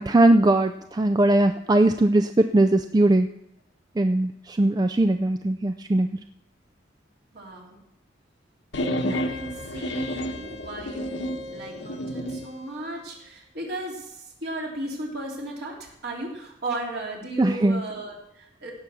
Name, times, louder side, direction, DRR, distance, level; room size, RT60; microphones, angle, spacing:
voice 1, 0.0-3.3 4.0-6.1 9.0-9.1 17.4-17.8, right 1 dB, 20° right, 8 dB, 0.4 m, -20 dB
voice 2, 7.3-7.8 9.1-18.7, right 2 dB, 55° right, -2 dB, 3.3 m, -35 dB
sound 1, 8.7-12.5, equal, 75° left, 1.1 m, -30 dB
16.5 x 6.1 x 7.1 m, 0.79 s
head